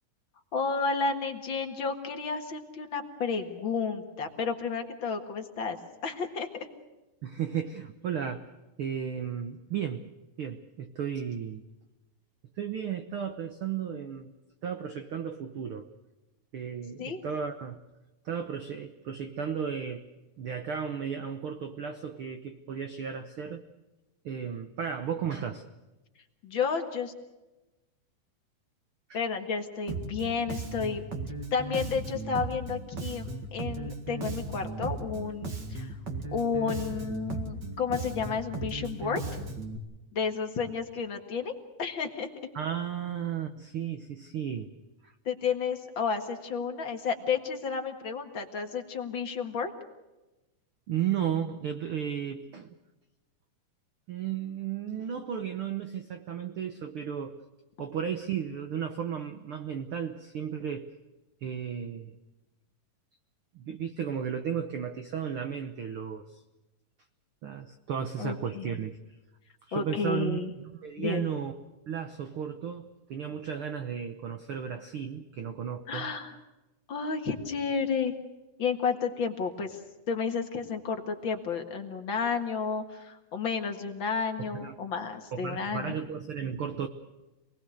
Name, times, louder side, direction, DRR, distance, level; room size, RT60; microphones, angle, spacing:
voice 1, 0.5-5.8 6.0-6.5 17.0-17.2 26.4-27.1 29.1-31.0 31.5-36.0 36.3-39.2 40.1-41.5 41.8-42.3 45.3-49.7 68.2-68.8 69.7-70.5 71.0-71.2 75.9-76.3 76.9-78.1 78.6-79.8 80.1-85.9, left 5 dB, 45° left, 4 dB, 2.0 m, -31 dB
voice 2, 7.2-8.5 8.8-10.1 10.4-11.6 12.6-14.3 14.6-15.9 16.5-17.8 18.2-20.1 20.4-23.6 24.2-25.6 29.1-29.2 42.5-44.7 45.0-45.1 50.9-52.7 54.1-57.4 57.8-60.9 61.4-62.2 63.5-66.4 67.4-69.0 69.7-70.5 70.8-71.5 71.9-76.1 84.4-84.7 85.3-86.9, right 8 dB, 75° right, 7 dB, 1.2 m, -34 dB
Bass guitar, 29.9-39.8, right 3 dB, 35° right, 2.2 m, -36 dB
27.0 x 20.0 x 6.5 m, 1.1 s
omnidirectional pair, 3.8 m